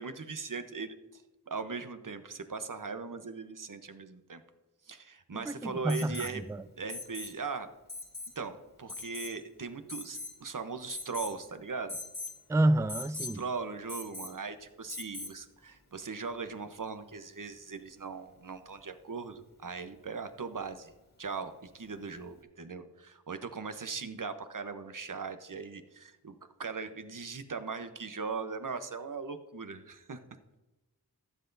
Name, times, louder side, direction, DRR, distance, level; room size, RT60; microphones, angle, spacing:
voice 1, 0.0-4.4 4.9-6.4 6.8-7.7 8.4-12.0 13.2-20.9 21.2-26.3 26.6-30.2, right 4 dB, 55° right, 0.9 m, -39 dB
voice 2, 5.5-6.6 12.5-13.4, right 1 dB, 10° right, 0.3 m, -29 dB
Alarm, 5.9-6.4 6.9-7.4 7.9-8.3 8.9-9.4 9.9-10.4 10.9-11.4 11.9-12.4 12.9-13.4 13.9-14.4 14.9-15.4 17.1-17.2, left 3 dB, 45° left, 2.2 m, -41 dB
15.5 x 7.9 x 2.6 m
wide cardioid pair, 50°, 38 cm